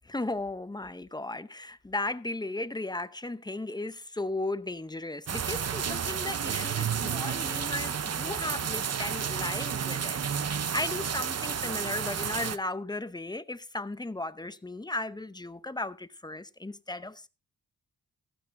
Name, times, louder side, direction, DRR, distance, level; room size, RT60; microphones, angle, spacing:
voice 1, 0.0-17.3, left 2 dB, 10° left, 0.6 m, -36 dB
sound 1, 5.3-12.6, right 7 dB, 45° right, 0.7 m, -31 dB
14.5 x 12.5 x 2.6 m
wide cardioid pair, 125°, 35 cm